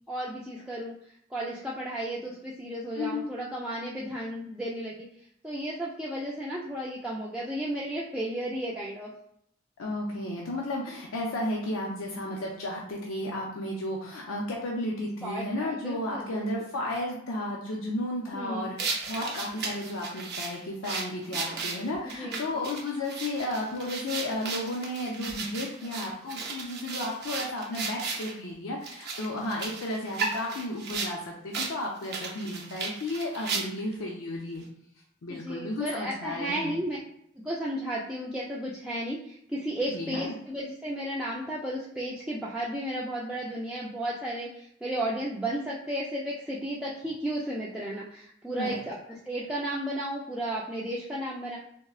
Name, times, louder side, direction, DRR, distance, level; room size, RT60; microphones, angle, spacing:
voice 1, 0.1-5.0 5.4-9.1 15.2-16.4 18.3-18.7 22.0-22.6 26.9-27.1 35.3-37.0 37.4-51.6, right 1 dB, 5° right, -6 dB, 0.3 m, -34 dB
voice 2, 9.8-34.7 35.2-36.7 39.9-40.3 48.6-48.8, left 1 dB, 75° left, -2 dB, 0.5 m, -33 dB
sound 1, 18.8-28.3 28.8-31.1 31.5-31.7 32.0-33.9, right 4 dB, 55° right, 0.6 m, -35 dB
3.6 x 2.0 x 2.3 m, 0.70 s
head